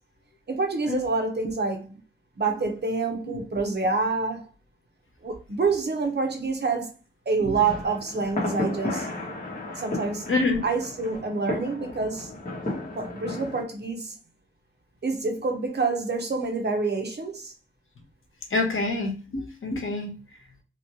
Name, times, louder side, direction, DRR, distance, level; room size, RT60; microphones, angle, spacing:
voice 1, 0.5-1.9 2.4-4.5 5.2-6.9 7.3-9.1 9.8-10.2 10.6-12.3 12.9-14.2 15.0-17.5, right 4 dB, 55° right, 1.0 m, -27 dB
sound 1, 7.5-13.6, left 2 dB, 40° left, 1.4 m, -33 dB
voice 2, 10.3-10.6 18.5-20.1, left 3 dB, 75° left, 1.0 m, -26 dB
3.2 x 2.8 x 2.9 m
wide cardioid pair, 100°, 21 cm